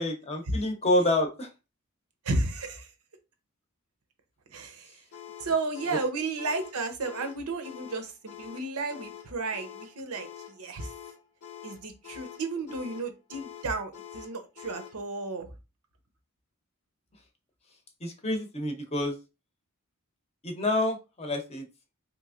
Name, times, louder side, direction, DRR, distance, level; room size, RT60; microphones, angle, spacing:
voice 1, 0.0-1.5 5.9-6.0 18.0-19.2 20.4-21.6, left 1 dB, 30° left, 4 dB, 0.7 m, -28 dB
voice 2, 2.2-2.9 4.5-4.9 5.4-10.9 11.6-15.5, right 3 dB, 90° right, 7 dB, 0.7 m, -33 dB
sound 1, 5.1-15.0, left 9 dB, 75° left, 0.7 m, -46 dB
3.4 x 3.0 x 2.4 m, 0.27 s
head